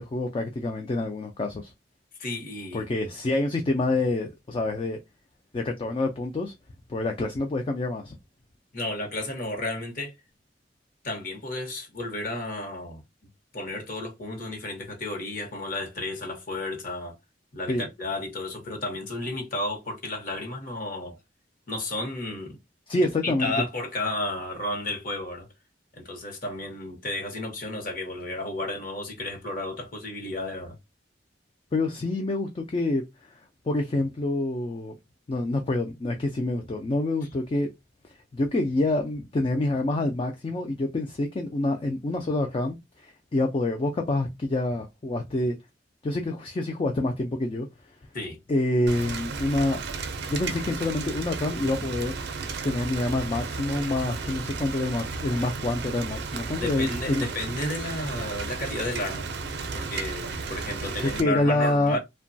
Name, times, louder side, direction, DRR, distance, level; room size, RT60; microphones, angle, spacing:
voice 1, 0.0-1.7 2.7-5.0 5.5-6.5 6.9-8.1 17.7-17.8 22.9-23.5 31.7-33.0 33.7-34.9 35.3-37.7 38.3-42.8 43.0-45.6 46.0-47.7 48.5-49.8 50.3-52.1 52.6-57.3 61.0-62.0, left 2 dB, 30° left, 0.3 m, -27 dB
voice 2, 2.2-2.9 8.7-10.2 11.0-13.0 13.5-17.2 17.5-21.2 21.7-22.6 23.0-25.5 25.9-30.8 48.1-48.4 56.6-59.3 59.7-62.0, left 2 dB, 50° left, 0.9 m, -32 dB
Rain, 48.9-61.2, right 4 dB, 65° right, 0.5 m, -34 dB
2.9 x 2.2 x 2.6 m
head